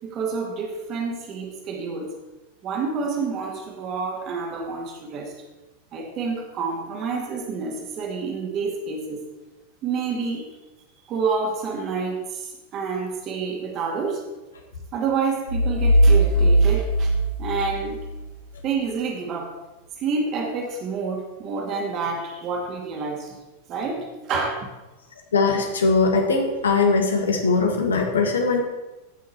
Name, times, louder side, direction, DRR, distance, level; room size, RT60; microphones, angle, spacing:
voice 1, 0.0-2.1 2.6-5.4 5.9-9.2 9.8-10.5 11.1-14.2 14.9-18.0 18.6-19.5 20.0-23.4 23.7-24.7, right 4 dB, 35° right, 1 dB, 2.4 m, -28 dB
sound 1, 15.5-18.2, right 1 dB, 65° right, 1.9 m, -19 dB
voice 2, 25.3-28.6, left 4 dB, 70° left, 3 dB, 1.7 m, -20 dB
15.5 x 6.3 x 4.4 m, 1.1 s
figure-of-eight pair, 90°, 0 cm